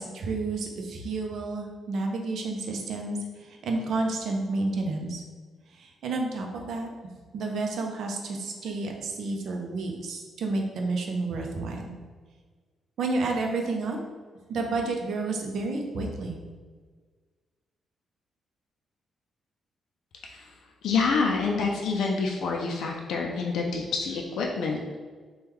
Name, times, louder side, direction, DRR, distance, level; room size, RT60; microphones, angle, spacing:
voice 1, 0.0-3.2 3.6-5.2 6.0-6.9 7.3-11.9 13.0-14.0 14.5-16.4, right 3 dB, 65° right, 2 dB, 0.5 m, -30 dB
voice 2, 20.8-24.8, left 4 dB, 75° left, 0 dB, 0.3 m, -27 dB
3.5 x 2.2 x 3.1 m, 1.5 s
cardioid pair, 150°, 0 cm